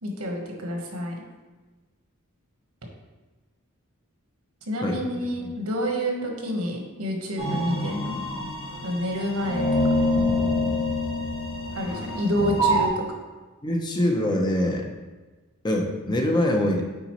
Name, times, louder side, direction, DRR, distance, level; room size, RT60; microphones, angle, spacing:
voice 1, 0.0-1.1 4.7-8.2 8.8-9.6 11.7-13.0, equal, 85° right, 1 dB, 1.2 m, -28 dB
voice 2, 4.8-5.2 13.6-14.9 15.6-16.8, left 1 dB, 20° left, 2 dB, 0.6 m, -24 dB
sound 1, 7.4-12.9, left 1 dB, 65° left, 1.9 m, -26 dB
8.9 x 4.0 x 3.0 m, 1.2 s
head